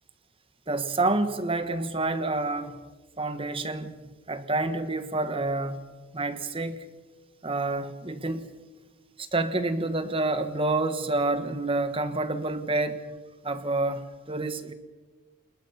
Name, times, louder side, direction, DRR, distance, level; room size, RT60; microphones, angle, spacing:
voice 1, 0.7-2.8 3.2-4.0 4.3-5.8 6.1-6.8 7.4-8.5 9.2-13.1 13.4-14.7, right 2 dB, 25° right, 1.2 m, -28 dB
29.5 x 21.5 x 5.6 m
head